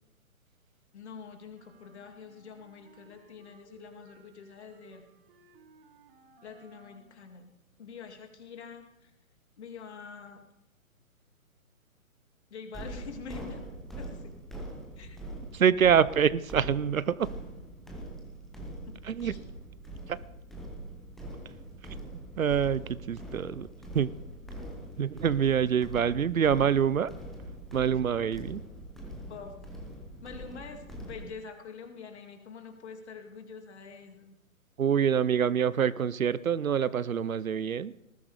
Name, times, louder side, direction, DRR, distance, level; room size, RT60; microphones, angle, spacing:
voice 1, 0.9-5.0 6.4-7.5 7.8-9.1 9.6-10.4 12.5-13.6 14.0-14.3 15.0-15.2 18.9-19.4 27.9-28.0 29.3-29.5 30.2-34.3, left 6 dB, 50° left, 4 dB, 2.4 m, -46 dB
sound 1, 1.5-7.3, right 4 dB, 40° right, 1.6 m, -60 dB
sound 2, 12.7-31.3, right 1 dB, ahead, 0.7 m, -43 dB
voice 2, 15.5-17.3 19.0-19.4 20.1-20.2 22.4-23.7 23.9-24.1 25.0-27.1 27.7-28.6 34.8-37.9, right 8 dB, 70° right, 19 dB, 0.7 m, -26 dB
19.5 x 14.5 x 3.4 m, 0.86 s
figure-of-eight pair, 135°, 42 cm